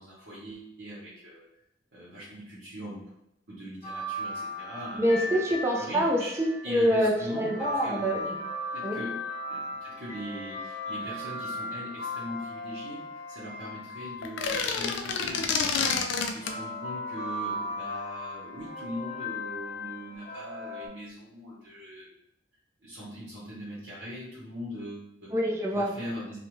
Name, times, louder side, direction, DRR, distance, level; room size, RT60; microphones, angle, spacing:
voice 1, 0.0-1.4 1.9-3.0 3.5-5.4 5.8-6.3 6.6-8.4 8.7-9.2 9.5-16.0 16.3-22.1 22.8-25.3 25.7-26.4, equal, 70° right, -8 dB, 0.9 m, -40 dB
sound 1, 3.8-14.7 15.6-20.9, left 1 dB, 40° left, 0.8 m, -37 dB
voice 2, 5.0-8.2 8.8-9.0 25.3-25.9, equal, 15° right, -2 dB, 0.3 m, -26 dB
sound 2, 14.2-16.6, left 5 dB, 75° left, 0.3 m, -28 dB
2.4 x 2.1 x 3.0 m, 0.83 s
head